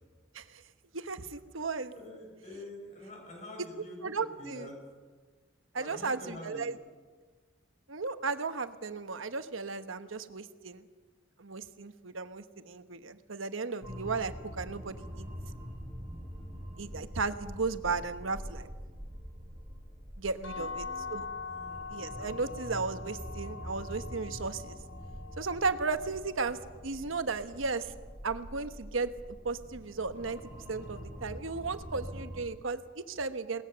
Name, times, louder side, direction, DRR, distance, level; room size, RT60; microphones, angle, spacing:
voice 1, 0.9-1.9 4.0-4.7 5.7-6.8 7.9-10.8 11.4-15.3 16.8-18.7 20.2-21.3 21.9-24.8 25.4-27.9 28.2-29.1 29.4-30.4 30.7-33.6, right 4 dB, 75° right, 10 dB, 1.1 m, -35 dB
voice 2, 1.9-4.7 5.7-6.6 20.5-21.1 21.5-21.8, left 1 dB, 35° left, 0 dB, 7.0 m, -47 dB
sound 1, 13.8-32.4, equal, 5° right, 4.2 m, -45 dB
sound 2, 20.4-26.2, left 5 dB, 80° left, 4.2 m, -43 dB
21.0 x 19.0 x 6.8 m, 1.4 s
head